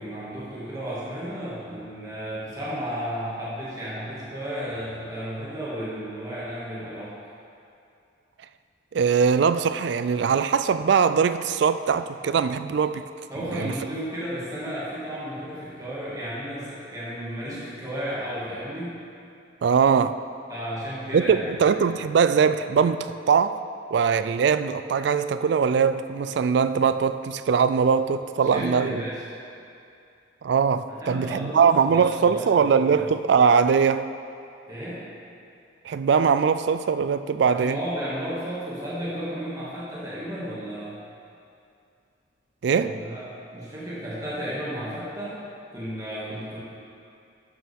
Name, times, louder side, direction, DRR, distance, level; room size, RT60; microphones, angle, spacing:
voice 1, 0.0-7.2 13.3-19.0 20.5-21.7 28.4-29.2 30.9-33.0 34.7-35.1 37.5-41.0 42.8-43.2 43.5-45.4 45.7-46.6, equal, 20° right, -9 dB, 2.0 m, -33 dB
voice 2, 8.9-13.0 13.5-13.7 19.6-20.2 21.1-23.6 23.9-29.0 30.4-34.1 35.9-37.8 42.6-42.9, right 6 dB, 60° right, 12 dB, 0.3 m, -21 dB
12.0 x 6.8 x 3.6 m, 2.5 s
head